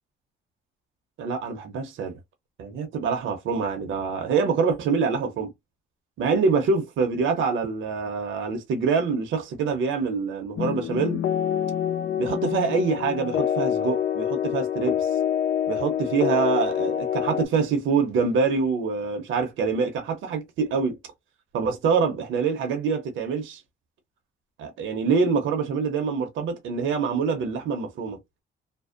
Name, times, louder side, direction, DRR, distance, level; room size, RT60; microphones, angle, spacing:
voice 1, 1.2-2.2 2.6-5.5 6.2-11.2 12.2-15.1 15.7-21.0 21.5-23.6 24.6-28.2, right 5 dB, 80° right, 0.8 m, -25 dB
sound 1, 10.6-17.4, left 9 dB, 55° left, 0.4 m, -26 dB
2.6 x 2.0 x 2.4 m
cardioid pair, 90°, 20 cm